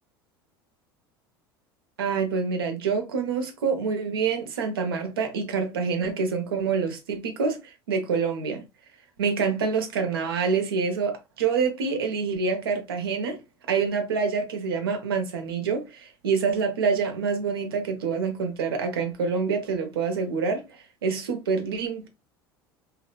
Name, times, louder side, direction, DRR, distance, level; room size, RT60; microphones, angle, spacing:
voice 1, 2.0-7.6 7.9-8.6 9.2-13.4 13.7-22.1, right 5 dB, 80° right, 0.8 m, -26 dB
2.9 x 2.1 x 2.3 m
hypercardioid pair, 75°, 12 cm